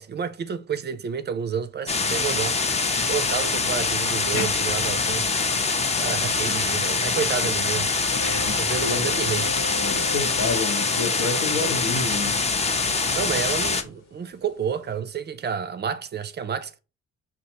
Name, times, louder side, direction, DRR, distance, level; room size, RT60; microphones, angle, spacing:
voice 1, 0.0-2.6 3.1-5.3 6.0-7.9 8.4-9.5 13.1-16.8, right 7 dB, 35° right, 0.4 m, -30 dB
sound 1, 1.9-13.8, left 4 dB, 20° left, 0.5 m, -24 dB
voice 2, 4.3-4.6 8.2-8.5 8.8-9.1 9.7-12.7, left 4 dB, 85° left, 1.0 m, -29 dB
sound 2, 8.1-15.0, left 1 dB, 60° left, 1.0 m, -40 dB
5.1 x 2.4 x 2.8 m
cardioid pair, 90°, 30 cm